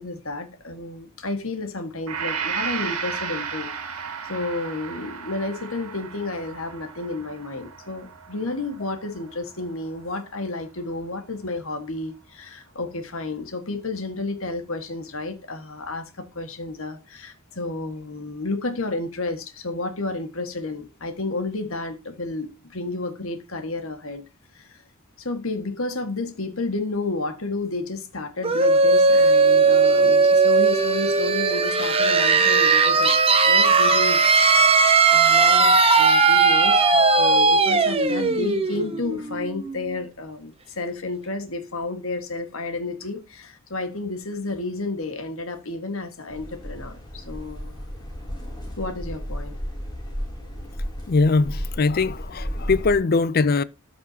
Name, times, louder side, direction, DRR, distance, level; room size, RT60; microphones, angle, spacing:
voice 1, 0.0-3.7 4.3-24.2 24.5-24.8 25.2-33.2 33.5-47.7 48.8-49.5, left 2 dB, 65° left, 1.7 m, -31 dB
Gong, 2.1-10.1, right 6 dB, 90° right, 1.9 m, -34 dB
sound 1, 28.4-40.0, right 4 dB, 25° right, 1.0 m, -18 dB
sound 2, 46.3-53.0, equal, 20° left, 3.0 m, -33 dB
voice 2, 51.1-53.6, left 3 dB, 45° left, 0.5 m, -21 dB
13.0 x 6.1 x 2.8 m
head